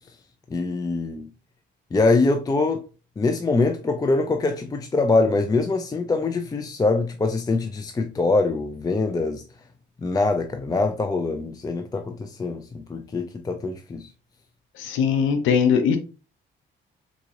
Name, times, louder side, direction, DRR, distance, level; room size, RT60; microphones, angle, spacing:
voice 1, 0.5-1.3 1.9-2.8 3.2-9.4 10.0-14.1, left 3 dB, 20° left, 0.4 m, -23 dB
voice 2, 14.8-16.0, left 6 dB, 85° left, 0.7 m, -20 dB
3.9 x 2.9 x 2.4 m
cardioid pair, 90°, 20 cm